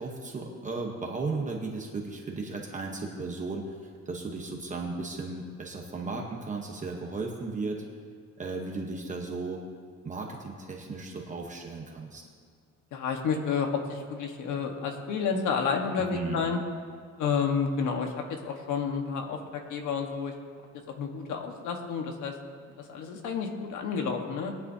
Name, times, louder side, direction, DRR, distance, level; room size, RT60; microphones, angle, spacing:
voice 1, 0.0-3.7 4.1-7.8 8.4-9.6 10.0-12.2 16.0-16.4, right 3 dB, 25° right, 0 dB, 1.0 m, -35 dB
voice 2, 12.9-16.6 17.2-20.3 20.9-22.3 22.8-24.5, left 6 dB, 80° left, 3 dB, 1.5 m, -30 dB
21.0 x 10.5 x 2.8 m, 2.1 s
cardioid pair, 175°, 30 cm